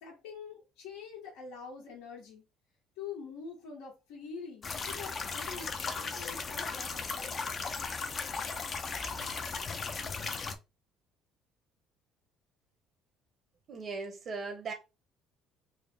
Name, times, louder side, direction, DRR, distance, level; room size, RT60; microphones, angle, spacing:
voice 1, 0.0-2.4 3.0-7.1, left 5 dB, 90° left, 1.3 m, -45 dB
sound 1, 4.6-10.6, left 4 dB, 35° left, 0.5 m, -36 dB
voice 2, 13.7-14.7, right 4 dB, 45° right, 0.8 m, -38 dB
3.5 x 2.0 x 3.4 m
cardioid pair, 125°, 0 cm